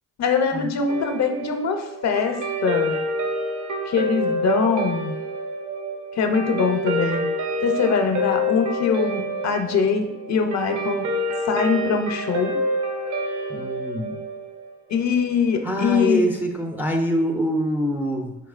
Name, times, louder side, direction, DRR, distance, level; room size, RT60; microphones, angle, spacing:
voice 1, 0.2-3.0 3.9-5.2 6.1-7.3 7.6-11.1 11.4-12.6 14.9-16.3, left 5 dB, 50° left, 5 dB, 0.6 m, -23 dB
Guitar, 0.9-15.5, equal, 55° right, 0.8 m, -28 dB
voice 2, 13.5-14.2 15.6-18.4, equal, 5° right, 1 dB, 0.4 m, -24 dB
4.8 x 3.0 x 2.4 m, 0.98 s
supercardioid pair, 75°, 36 cm